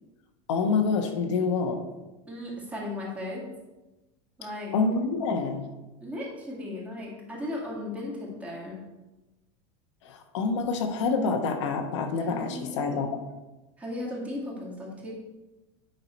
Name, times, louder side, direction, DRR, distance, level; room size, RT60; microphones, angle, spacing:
voice 1, 0.5-1.8 4.7-5.7 10.0-13.1, left 4 dB, 75° left, 4 dB, 1.2 m, -27 dB
voice 2, 2.3-3.5 4.4-4.7 6.0-8.8 12.2-13.1 13.8-15.1, left 1 dB, 10° right, -4 dB, 1.9 m, -36 dB
9.0 x 5.6 x 4.2 m, 1.1 s
supercardioid pair, 170°, 15 cm